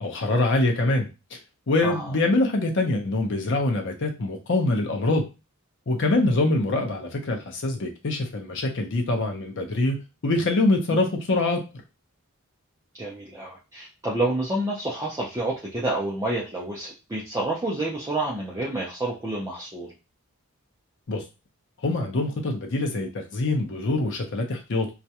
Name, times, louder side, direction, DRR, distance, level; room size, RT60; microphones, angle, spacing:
voice 1, 0.0-1.4 1.7-5.3 5.9-11.6 21.1-21.2 21.8-24.9, left 2 dB, 55° left, 2 dB, 0.6 m, -24 dB
voice 2, 1.8-2.2 10.9-11.0 13.0-19.9, right 2 dB, 15° right, -5 dB, 0.4 m, -29 dB
2.3 x 2.1 x 2.7 m, 0.28 s
head